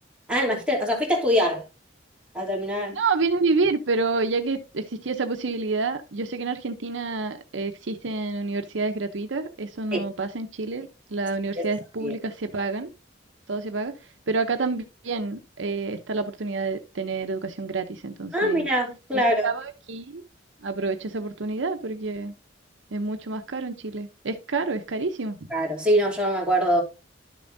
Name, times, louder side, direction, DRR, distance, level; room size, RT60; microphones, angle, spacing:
voice 1, 0.3-1.6 2.3-2.9 9.9-10.0 11.6-11.7 12.0-12.1 18.3-19.5 25.5-26.8, equal, 5° right, 3.0 m, -23 dB
voice 2, 2.9-12.9 13.5-18.7 19.1-20.2 20.6-22.3 22.9-25.5, right 3 dB, 75° right, 0.8 m, -28 dB
12.0 x 6.9 x 2.7 m
head